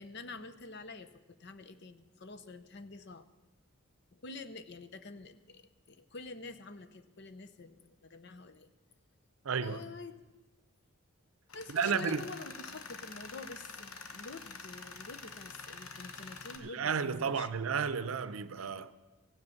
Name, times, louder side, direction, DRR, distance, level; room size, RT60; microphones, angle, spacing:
voice 1, 0.0-3.2 4.1-8.7 9.6-10.2 11.5-17.5, left 3 dB, 55° left, 0.7 m, -47 dB
voice 2, 9.4-9.8 11.7-12.2 16.6-18.9, right 6 dB, 75° right, 0.6 m, -32 dB
Tools, 11.5-16.6, left 4 dB, 85° left, 1.1 m, -47 dB
15.5 x 7.9 x 7.1 m
head